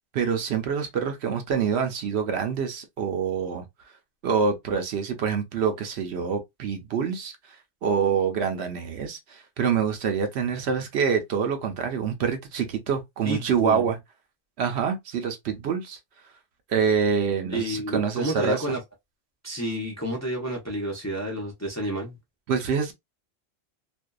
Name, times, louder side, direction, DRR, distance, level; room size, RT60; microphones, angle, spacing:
voice 1, 0.1-3.7 4.2-7.3 7.8-14.0 14.6-16.0 16.7-18.8 22.5-22.9, right 6 dB, 70° right, 0.9 m, -26 dB
voice 2, 13.2-13.9 17.5-18.8 19.4-22.2, right 1 dB, 20° left, 0.5 m, -30 dB
2.6 x 2.2 x 2.2 m
omnidirectional pair, 1.2 m